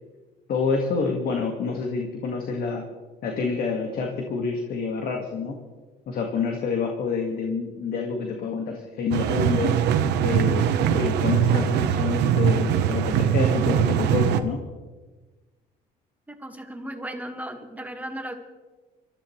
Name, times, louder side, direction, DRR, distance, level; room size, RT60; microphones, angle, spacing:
voice 1, 0.5-2.9 3.2-5.6 6.1-9.8 10.2-14.6, left 5 dB, 65° left, 2 dB, 1.8 m, -28 dB
sound 1, 9.1-14.4, right 8 dB, 80° right, 1.0 m, -22 dB
voice 2, 16.3-18.3, right 1 dB, 10° right, 4 dB, 1.7 m, -36 dB
25.0 x 14.0 x 3.2 m, 1.3 s
cardioid pair, 110°, 17 cm